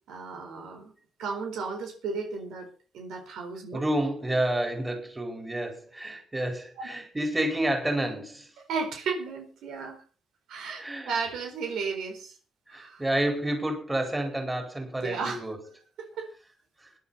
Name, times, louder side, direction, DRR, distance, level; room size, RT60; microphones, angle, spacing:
voice 1, 0.1-0.9 1.2-2.7 2.9-3.8 6.8-6.9 8.7-10.0 10.5-12.4 12.7-13.0 15.0-15.4 16.0-16.3, right 5 dB, 90° right, 3 dB, 4.4 m, -34 dB
voice 2, 3.7-8.5 10.7-11.2 12.7-15.6 16.8-16.9, right 1 dB, 15° right, 3 dB, 4.7 m, -29 dB
20.5 x 10.5 x 4.3 m, 0.38 s
cardioid pair, 105°, 0 cm